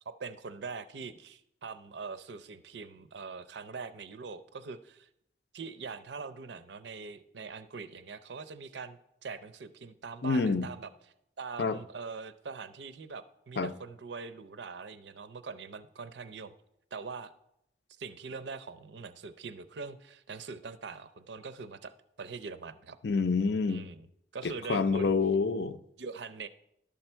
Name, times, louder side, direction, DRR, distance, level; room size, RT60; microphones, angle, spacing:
voice 1, 0.0-5.1 5.5-10.9 11.4-16.5 16.9-17.3 18.0-21.9 22.2-23.0 23.7-24.1 24.3-25.1 26.0-26.5, right 4 dB, 80° right, 0.5 m, -42 dB
voice 2, 10.2-10.7 11.6-11.8 13.6-13.7 23.0-23.8 24.4-25.8, left 4 dB, 70° left, 0.5 m, -27 dB
11.5 x 7.0 x 4.4 m
head